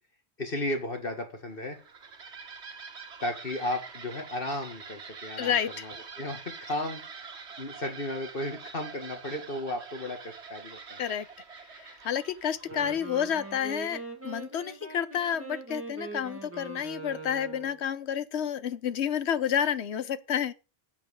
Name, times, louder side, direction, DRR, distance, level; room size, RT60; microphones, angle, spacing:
voice 1, 0.4-1.8 3.2-7.3 7.6-11.0, left 1 dB, 55° left, 2.1 m, -34 dB
sound 1, 1.5-14.1, right 5 dB, 80° right, 1.6 m, -46 dB
voice 2, 5.4-5.9 11.0-11.3 11.5-20.5, left 8 dB, 80° left, 1.1 m, -30 dB
Wind instrument woodwind instrument, 12.5-17.8, right 3 dB, 10° right, 2.4 m, -42 dB
8.4 x 7.6 x 6.4 m
omnidirectional pair, 1.1 m